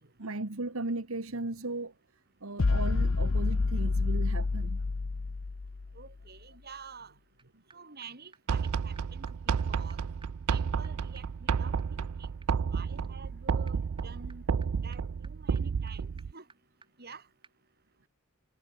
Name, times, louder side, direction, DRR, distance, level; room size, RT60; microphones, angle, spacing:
voice 1, 0.2-1.9 2.4-4.8 12.7-13.0, right 2 dB, 75° right, 1.7 m, -36 dB
sound 1, 2.6-6.0, left 3 dB, 65° left, 0.7 m, -28 dB
voice 2, 5.9-7.1 7.7-10.0 10.5-11.7 12.2-12.3 12.7-14.4 14.8-16.5 17.0-17.2, right 5 dB, 50° right, 3.4 m, -49 dB
sound 2, 7.4-7.5 7.7-7.8 8.0-8.1 8.3-8.4 8.6-8.7 9.0-9.1 9.3-9.4 9.6-9.7 9.9-17.2 17.4-17.5, right 4 dB, 25° right, 7.0 m, -62 dB
sound 3, 8.5-16.3, right 6 dB, 90° right, 0.4 m, -31 dB
head